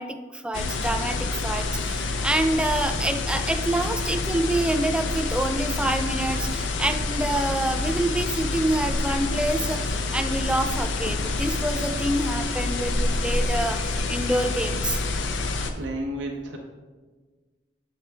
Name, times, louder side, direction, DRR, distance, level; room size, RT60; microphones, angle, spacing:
voice 1, 0.0-15.0, right 1 dB, 5° right, 6 dB, 0.3 m, -27 dB
sound 1, 0.5-15.7, left 3 dB, 90° left, 0.6 m, -27 dB
voice 2, 15.4-16.6, right 1 dB, 75° right, 1 dB, 0.7 m, -33 dB
7.7 x 4.4 x 3.3 m, 1.4 s
head